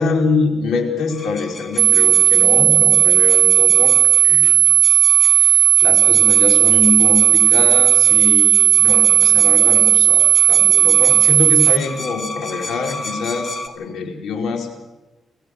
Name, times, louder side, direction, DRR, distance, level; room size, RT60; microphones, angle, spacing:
voice 1, 0.0-4.6 4.8-5.0 5.4-14.7, left 4 dB, 85° left, 2 dB, 4.7 m, -24 dB
sound 1, 1.1-13.7, left 2 dB, 40° left, 2.5 m, -34 dB
sound 2, 1.8-11.8, right 12 dB, 85° right, 0.7 m, -13 dB
25.5 x 16.0 x 6.7 m, 1.1 s
cardioid pair, 85°, 0 cm